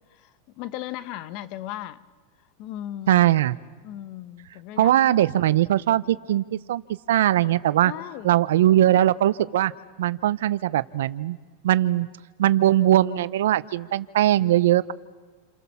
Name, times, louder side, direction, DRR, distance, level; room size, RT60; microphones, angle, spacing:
voice 1, 0.5-2.0 2.6-3.2 3.8-5.0 7.8-8.4, left 13 dB, 50° left, 13 dB, 1.4 m, -36 dB
voice 2, 3.1-3.6 4.8-6.8 7.1-7.9 8.2-9.7 10.0-11.4 11.6-12.1 12.4-14.9, right 13 dB, 80° right, 16 dB, 0.9 m, -20 dB
29.5 x 28.0 x 7.1 m, 1.4 s
hypercardioid pair, 125°, 0 cm